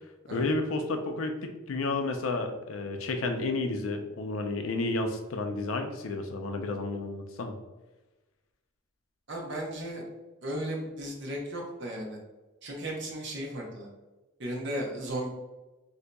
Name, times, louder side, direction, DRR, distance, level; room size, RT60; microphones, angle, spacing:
voice 1, 0.3-7.5, left 2 dB, 80° left, 5 dB, 0.4 m, -31 dB
voice 2, 9.3-10.0 10.4-12.2 12.6-13.9 14.4-15.3, right 1 dB, 60° right, -1 dB, 0.7 m, -35 dB
3.9 x 2.7 x 2.2 m, 1.1 s
head